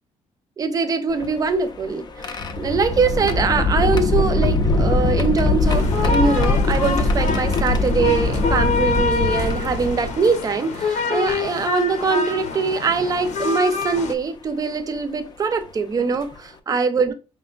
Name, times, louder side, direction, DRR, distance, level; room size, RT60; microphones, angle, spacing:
voice 1, 0.6-17.1, right 4 dB, 30° right, 0.6 m, -22 dB
sound 1, 1.1-10.4 11.3-11.4 12.8-13.1 13.8-14.0 15.6-15.7 16.1-16.4, left 2 dB, 35° left, 0.6 m, -22 dB
sound 2, 5.6-14.2, left 4 dB, 70° left, 0.8 m, -27 dB
5.2 x 3.4 x 2.4 m
cardioid pair, 150°, 13 cm